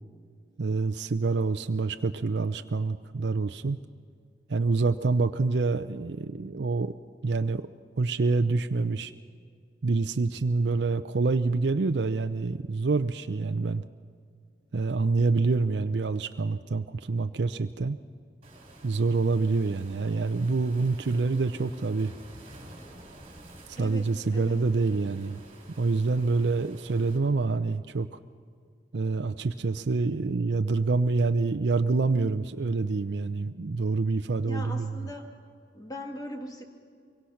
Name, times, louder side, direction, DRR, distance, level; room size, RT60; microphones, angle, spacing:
voice 1, 0.6-3.8 4.5-6.9 7.2-7.7 8.0-9.1 9.8-13.8 14.7-18.0 18.8-22.1 23.8-25.4 25.8-28.2 28.9-35.1, right 3 dB, 75° right, 8 dB, 0.5 m, -26 dB
Waves surf, 18.4-27.2, right 1 dB, 35° right, 4.4 m, -50 dB
voice 2, 34.5-35.4 35.7-36.6, equal, 20° left, 3 dB, 2.1 m, -39 dB
23.5 x 23.5 x 5.8 m, 2.2 s
head